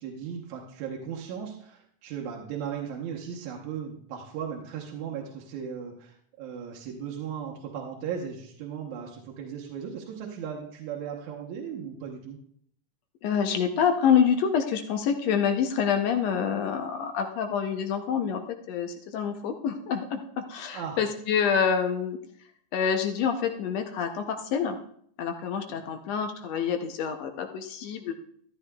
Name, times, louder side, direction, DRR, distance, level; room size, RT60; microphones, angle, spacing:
voice 1, 0.0-12.4 20.7-21.0, right 7 dB, 75° right, -1 dB, 2.4 m, -37 dB
voice 2, 13.2-18.4 18.7-22.2 22.7-24.8 25.2-28.1, left 7 dB, 75° left, 5 dB, 1.7 m, -27 dB
13.0 x 12.0 x 2.3 m, 0.65 s
omnidirectional pair, 3.4 m